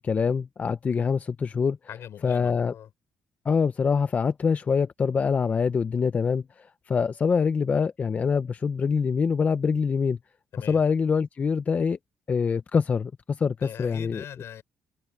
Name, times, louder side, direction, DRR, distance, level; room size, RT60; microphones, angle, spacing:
voice 1, 0.0-1.8 2.2-2.7 3.5-10.2 10.7-12.0 12.3-14.2, left 5 dB, 30° left, 0.5 m, -25 dB
voice 2, 1.9-2.9 10.5-10.8 13.6-14.6, left 10 dB, 60° left, 5.3 m, -41 dB
cardioid pair, 140°, 5 cm